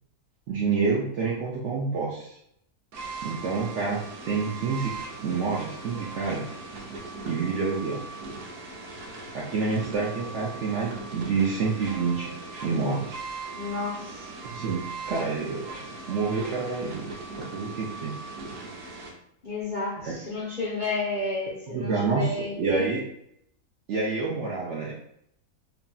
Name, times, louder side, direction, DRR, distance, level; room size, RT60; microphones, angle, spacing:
voice 1, 0.5-2.4 3.2-4.0 4.2-4.9 5.2-6.5 7.3-8.0 9.3-12.3 12.6-13.1 14.5-14.8 15.1-15.7 16.1-17.1 17.4-18.1 18.6-18.7 20.0-20.1 21.7-22.3 22.6-23.0 23.9-24.9, right 4 dB, 70° right, -3 dB, 0.7 m, -28 dB
sound 1, 2.9-19.1, right 3 dB, 90° right, 1.2 m, -39 dB
voice 2, 13.5-14.3 19.4-23.0, left 3 dB, 50° left, -9 dB, 0.6 m, -31 dB
2.9 x 2.6 x 2.2 m, 0.73 s
omnidirectional pair, 1.7 m